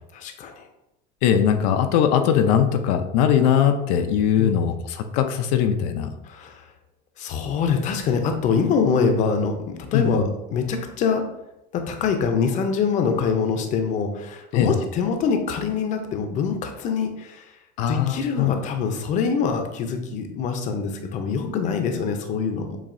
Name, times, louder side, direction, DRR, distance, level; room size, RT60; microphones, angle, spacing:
voice 1, 0.1-0.7 4.4-4.5 6.2-6.6 7.2-11.3 11.7-17.5 17.9-22.8, left 5 dB, 35° left, 5 dB, 0.6 m, -24 dB
voice 2, 1.2-6.1 9.9-10.2 14.5-14.7 17.8-18.5, left 8 dB, 80° left, 6 dB, 0.5 m, -20 dB
7.1 x 2.7 x 2.6 m, 0.88 s
cardioid pair, 155°, 21 cm